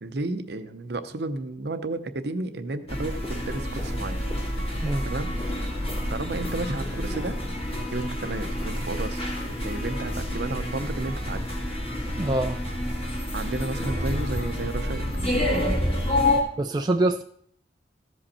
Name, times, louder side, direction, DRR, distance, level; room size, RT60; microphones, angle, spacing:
voice 1, 0.0-4.2 5.0-5.4 6.1-7.4 7.9-11.4 13.3-15.0, right 2 dB, 60° right, 10 dB, 0.7 m, -32 dB
sound 1, 2.9-16.4, left 1 dB, 30° left, 2.0 m, -28 dB
voice 2, 12.2-12.6 16.6-17.2, right 2 dB, 20° right, 5 dB, 0.3 m, -25 dB
14.5 x 5.2 x 4.2 m, 0.65 s
head